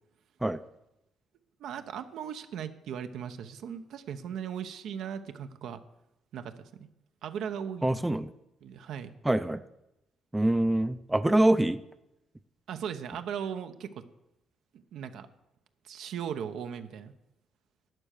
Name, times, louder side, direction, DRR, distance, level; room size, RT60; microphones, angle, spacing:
voice 1, 1.6-5.8 6.3-6.9 7.2-8.0 8.6-9.1 12.7-14.0 14.7-15.3 15.8-17.1, right 8 dB, 75° right, 8 dB, 1.0 m, -38 dB
voice 2, 7.8-8.3 9.2-9.6 10.3-11.8, right 1 dB, 10° right, 12 dB, 0.6 m, -25 dB
12.5 x 9.0 x 6.7 m, 0.86 s
cardioid pair, 90°, 0 cm